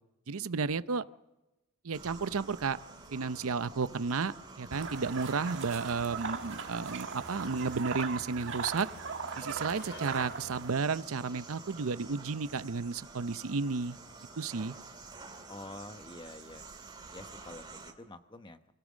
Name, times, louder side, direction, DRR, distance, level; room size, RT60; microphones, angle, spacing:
voice 1, 0.3-1.0 1.8-2.8 3.1-8.9 9.4-14.0 14.4-14.7, right 4 dB, 80° right, 14 dB, 0.7 m, -33 dB
sound 1, 1.9-17.9, right 3 dB, 20° right, 2.3 m, -49 dB
sound 2, 4.7-10.7, right 5 dB, 60° right, 1.4 m, -39 dB
sound 3, 8.9-14.3, left 2 dB, 55° left, 3.7 m, -57 dB
voice 2, 15.5-16.7 17.1-18.7, left 2 dB, 20° left, 9 dB, 1.0 m, -47 dB
26.0 x 16.5 x 6.4 m, 1.0 s
head